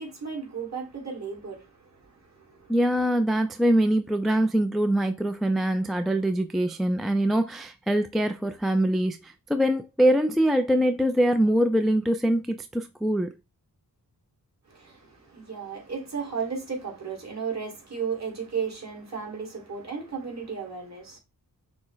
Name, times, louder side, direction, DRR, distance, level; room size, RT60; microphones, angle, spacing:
voice 1, 0.0-2.7 14.7-21.2, right 6 dB, 45° right, 2.2 m, -34 dB
voice 2, 2.7-13.3, right 1 dB, ahead, 0.3 m, -23 dB
6.1 x 2.1 x 3.9 m
wide cardioid pair, 105°, 37 cm